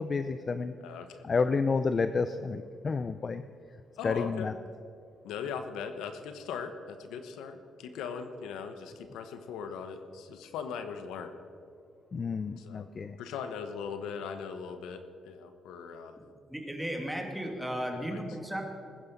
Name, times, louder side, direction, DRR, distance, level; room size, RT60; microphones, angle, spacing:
voice 1, 0.0-0.7 1.2-3.4 4.0-4.5 12.1-13.1, left 4 dB, 40° left, 11 dB, 0.5 m, -30 dB
voice 2, 0.8-1.2 4.0-4.5 5.2-11.3 12.6-12.9 13.2-16.2 17.9-18.2, left 6 dB, 90° left, 8 dB, 1.1 m, -39 dB
voice 3, 16.5-18.6, equal, ahead, 2 dB, 2.3 m, -35 dB
20.0 x 9.9 x 5.3 m, 2.4 s
cardioid pair, 90°, 0 cm